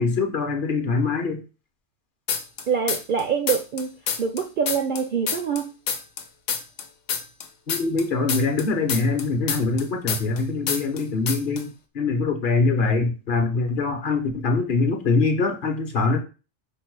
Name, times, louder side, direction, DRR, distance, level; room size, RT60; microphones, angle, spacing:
voice 1, 0.0-1.4 7.7-16.2, left 3 dB, 50° left, 4 dB, 0.8 m, -23 dB
sound 1, 2.3-3.2 3.5-6.2 6.5-10.4 10.7-11.0 11.3-11.6, left 6 dB, 80° left, 1.0 m, -27 dB
voice 2, 2.7-3.9 4.2-5.7, right 6 dB, 60° right, 6 dB, 0.5 m, -25 dB
5.3 x 2.1 x 4.5 m, 0.32 s
omnidirectional pair, 1.2 m